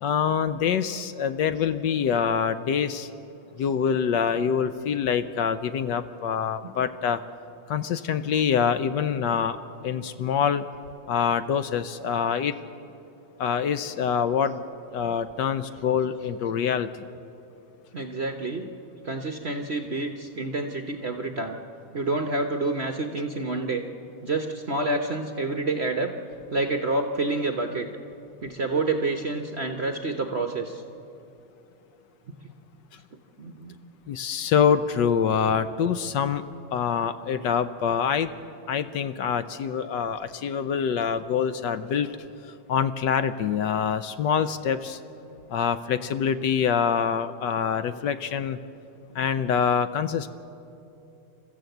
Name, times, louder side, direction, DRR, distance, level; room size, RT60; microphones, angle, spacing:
voice 1, 0.0-3.1 3.6-7.2 7.7-9.6 9.8-10.6 11.1-12.5 13.4-14.6 14.9-16.9 34.1-36.4 36.7-38.3 38.7-42.2 42.5-45.0 45.5-48.6 49.1-50.3, left 7 dB, 70° left, 11 dB, 1.2 m, -25 dB
voice 2, 17.9-18.6 19.0-21.6 21.9-23.8 24.2-26.1 26.5-27.9 28.4-30.8 33.4-33.8 34.7-34.8 41.1-41.2, right 2 dB, 45° right, 5 dB, 0.8 m, -28 dB
28.5 x 14.0 x 7.9 m, 2.7 s
omnidirectional pair, 2.2 m